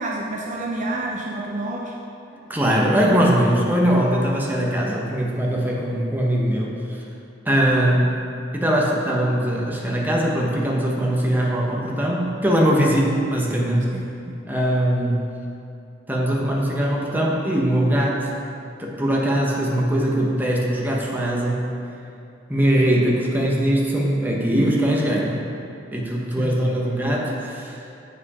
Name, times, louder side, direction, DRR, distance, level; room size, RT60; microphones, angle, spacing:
voice 1, 0.0-1.9 13.9-14.4 24.5-24.8 26.4-26.5, right 2 dB, 40° right, -2 dB, 0.6 m, -29 dB
voice 2, 2.5-7.0 7.4-8.1 8.5-13.9 14.5-15.3 16.1-18.3 18.8-21.7 22.5-25.4 25.9-27.8, right 1 dB, 10° right, -3 dB, 1.0 m, -21 dB
7.7 x 5.7 x 4.8 m, 2.6 s
head